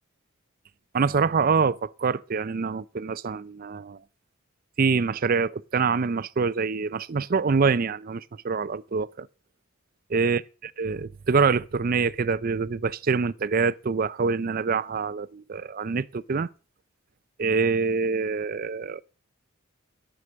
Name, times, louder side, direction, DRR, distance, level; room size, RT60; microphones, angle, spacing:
voice 1, 0.9-4.0 4.8-9.3 10.1-16.5 17.4-19.0, right 5 dB, 40° right, 0.4 m, -25 dB
11.0 x 6.5 x 7.2 m
head